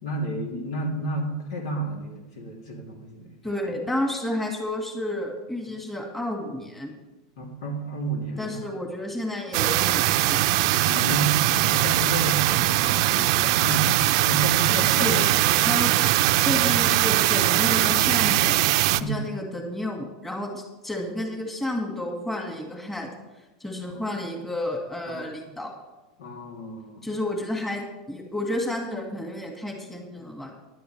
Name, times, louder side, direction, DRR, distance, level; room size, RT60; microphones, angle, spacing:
voice 1, 0.0-3.3 7.4-8.6 10.8-15.3 18.9-19.2 23.9-24.0 25.1-25.3 26.2-27.1, right 2 dB, 85° left, 0 dB, 3.2 m, -31 dB
voice 2, 3.4-6.9 8.4-10.6 14.8-16.1 16.4-18.5 19.0-23.1 23.6-25.7 27.0-30.5, left 1 dB, 10° left, 1 dB, 2.2 m, -31 dB
sound 1, 9.5-19.0, right 16 dB, 65° right, 0.5 m, -21 dB
16.0 x 11.0 x 3.5 m, 1.1 s
supercardioid pair, 130°, 3 cm